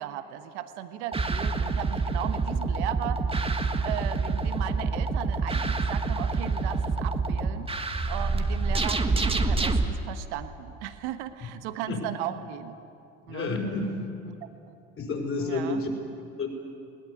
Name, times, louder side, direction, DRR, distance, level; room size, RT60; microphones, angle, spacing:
voice 1, 0.0-3.2 3.8-7.7 8.1-12.8 13.3-13.6 14.3-14.4 15.4-15.8, right 12 dB, 85° right, 10 dB, 1.3 m, -37 dB
sound 1, 1.1-9.8, right 3 dB, 15° right, 1.6 m, -27 dB
voice 2, 13.3-14.0 15.0-15.9 16.4-16.5, left 3 dB, 40° left, 2 dB, 5.1 m, -30 dB
21.0 x 18.0 x 9.9 m, 2.7 s
supercardioid pair, 85°, 34 cm